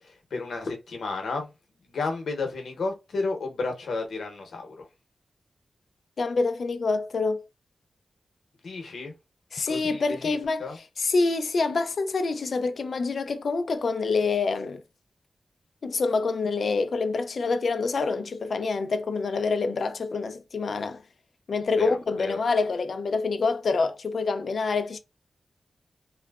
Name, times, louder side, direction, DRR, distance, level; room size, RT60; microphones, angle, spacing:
voice 1, 0.0-1.5 1.8-4.9 8.6-9.1 9.7-10.8 21.8-22.4, left 3 dB, 85° left, 0.8 m, -32 dB
voice 2, 6.2-7.4 9.5-10.7 11.0-14.8 15.8-21.0 21.5-25.0, left 4 dB, 60° left, 0.3 m, -26 dB
3.0 x 2.0 x 2.2 m
wide cardioid pair, 165°, 0 cm